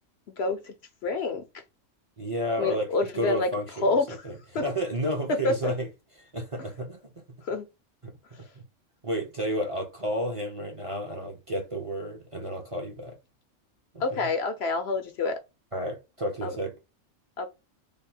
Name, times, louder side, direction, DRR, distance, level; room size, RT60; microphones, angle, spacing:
voice 1, 0.4-0.7 1.0-1.6 2.6-3.5 3.8-4.2 4.5-4.6 5.4-5.7 7.4-7.6 14.0-15.4 16.4-16.5 17.4-17.5, left 3 dB, 65° left, 0.8 m, -27 dB
voice 2, 2.2-2.9 3.2-4.0 4.2-5.9 6.2-7.0 9.0-13.1 13.9-14.3 15.7-16.7, equal, 30° right, 0.7 m, -31 dB
3.4 x 2.1 x 4.2 m
omnidirectional pair, 1.3 m